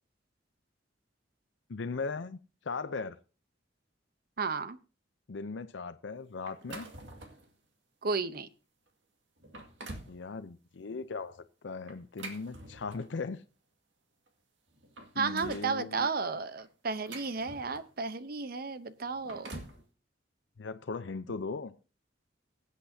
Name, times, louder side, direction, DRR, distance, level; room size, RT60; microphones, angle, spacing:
voice 1, 1.7-2.4 2.6-3.2 5.3-6.9 10.1-13.4 15.1-16.1 20.6-21.7, left 4 dB, 80° left, 0.6 m, -38 dB
voice 2, 4.4-4.8 8.0-8.5 15.2-19.6, right 4 dB, 55° right, 0.8 m, -33 dB
sound 1, 6.5-7.5 8.1-8.2 8.9-9.0 9.4-10.2 11.9-13.2 14.3-14.4 14.7-15.7 16.6-18.0 19.0-19.8, right 2 dB, 80° right, 2.1 m, -46 dB
22.5 x 8.3 x 2.7 m
head